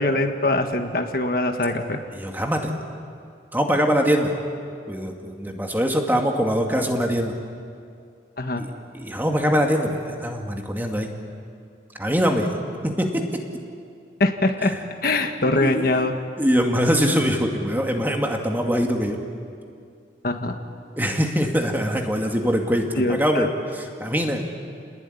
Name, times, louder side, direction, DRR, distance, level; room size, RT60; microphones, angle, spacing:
voice 1, 0.0-2.0 8.4-8.6 14.2-14.7 15.0-16.1 20.2-20.6 23.0-23.5, left 2 dB, 50° left, 5 dB, 1.6 m, -22 dB
voice 2, 2.1-2.7 3.5-4.3 4.9-7.3 8.6-8.7 8.9-11.1 12.0-12.5 12.8-13.4 14.6-14.7 15.6-16.0 16.4-19.2 21.0-23.5 23.7-24.4, equal, 10° right, 2 dB, 2.2 m, -23 dB
29.5 x 20.0 x 9.9 m, 2.4 s
head